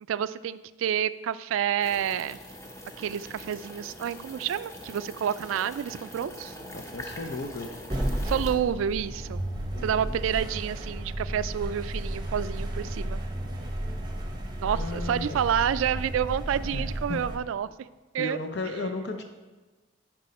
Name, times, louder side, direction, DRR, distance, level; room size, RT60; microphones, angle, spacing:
voice 1, 0.1-2.4 3.0-6.5 8.2-9.4 9.8-13.8 14.6-17.9 18.1-18.4, right 9 dB, 85° right, 16 dB, 0.3 m, -29 dB
sound 1, 1.8-8.6, equal, 15° left, 0.8 m, -43 dB
sound 2, 6.1-10.5, equal, 85° left, 1.7 m, -50 dB
voice 2, 6.7-7.7 9.7-10.2 14.7-15.4 16.7-17.2 18.2-19.2, left 2 dB, 55° left, 5 dB, 0.6 m, -35 dB
sound 3, 7.9-17.4, right 1 dB, 20° right, 0.8 m, -33 dB
10.5 x 4.7 x 4.1 m, 1.2 s
head